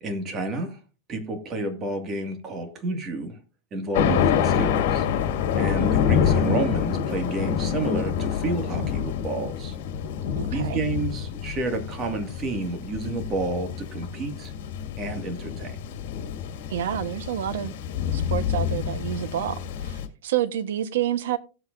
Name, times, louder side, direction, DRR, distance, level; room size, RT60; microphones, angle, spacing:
voice 1, 0.0-0.8 1.1-3.4 3.7-5.1 5.5-9.8 10.5-14.5 15.0-15.9, right 2 dB, 25° right, 2.0 m, -30 dB
Thunder, 3.9-20.1, left 8 dB, 65° left, 2.0 m, -27 dB
voice 2, 10.3-10.8 16.7-17.7 18.1-21.4, right 11 dB, 85° right, 1.2 m, -29 dB
17.0 x 7.9 x 2.6 m
supercardioid pair, 150°, 0 cm